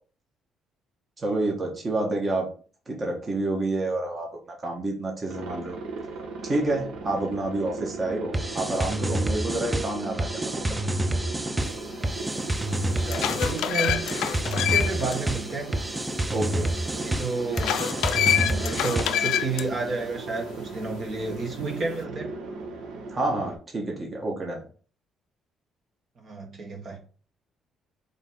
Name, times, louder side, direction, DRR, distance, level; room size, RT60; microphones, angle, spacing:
voice 1, 1.2-2.5 2.9-4.3 4.6-5.8 6.4-10.4 10.7-10.8 16.3-16.7 23.1-24.6, right 2 dB, 35° right, 1.4 m, -28 dB
Aircraft, 5.3-23.6, right 3 dB, 80° right, 1.1 m, -38 dB
sound 1, 8.3-19.4, right 1 dB, 15° right, 0.5 m, -29 dB
sound 2, 12.1-12.2 12.8-15.1 15.5-15.6 17.5-19.6, left 10 dB, 80° left, 0.4 m, -26 dB
voice 2, 12.8-14.0 14.6-15.7 16.9-17.8 18.3-22.3 26.2-27.0, right 3 dB, 55° right, 1.4 m, -31 dB
3.9 x 3.5 x 3.9 m
cardioid pair, 80°, 0 cm